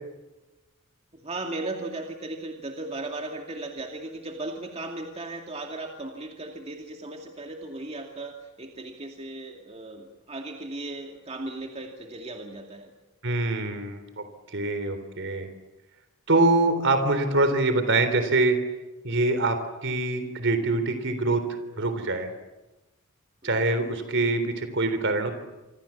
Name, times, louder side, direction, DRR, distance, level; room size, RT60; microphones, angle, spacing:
voice 1, 1.2-12.9 23.4-23.6, right 2 dB, 30° right, 2 dB, 2.4 m, -36 dB
voice 2, 13.2-14.2 14.5-15.5 16.3-18.6 19.0-21.4 21.8-22.3 23.4-25.3, right 2 dB, 55° right, 9 dB, 3.7 m, -24 dB
27.0 x 26.0 x 7.4 m, 1.1 s
head